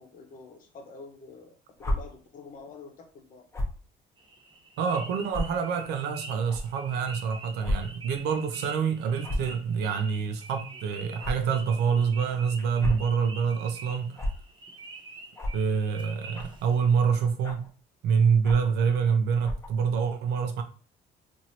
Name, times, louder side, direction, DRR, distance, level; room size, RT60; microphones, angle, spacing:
voice 1, 0.0-3.4, left 4 dB, 50° left, 0.9 m, -47 dB
sound 1, 1.8-2.0 3.5-3.8 4.5-4.6 5.3-5.4 6.5-6.6 7.6-7.8 8.1-8.2 9.2-9.5 11.2-11.3 12.6-13.1 14.2-14.3 15.3-15.6 16.3-16.6 17.4-17.7 18.4-18.7 19.4-19.7, left 1 dB, 15° left, 0.8 m, -30 dB
sound 2, 4.2-17.0, right 3 dB, 25° right, 0.6 m, -46 dB
voice 2, 4.8-14.2 15.5-17.7 18.0-20.6, right 6 dB, 80° right, 0.5 m, -26 dB
2.9 x 2.6 x 2.7 m
cardioid pair, 110°, 17 cm